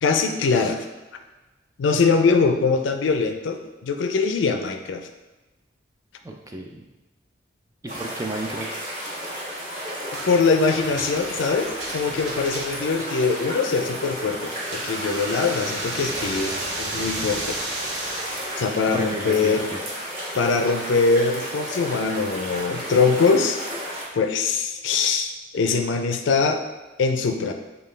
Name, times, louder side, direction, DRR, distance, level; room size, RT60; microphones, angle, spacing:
voice 1, 0.0-0.8 1.8-5.1 10.3-17.6 18.2-18.3 18.6-19.6 20.3-23.6 24.1-26.6 27.0-27.5, left 4 dB, 80° left, 6 dB, 0.4 m, -22 dB
voice 2, 6.2-6.8 7.8-8.8 18.9-19.8, right 2 dB, 15° right, 2 dB, 0.3 m, -32 dB
sound 1, 7.9-24.0, equal, 45° right, 1.0 m, -33 dB
sound 2, 10.1-10.3 10.7-13.0 14.4-18.6, right 2 dB, 75° right, 0.8 m, -33 dB
5.2 x 2.3 x 3.1 m, 1.2 s
head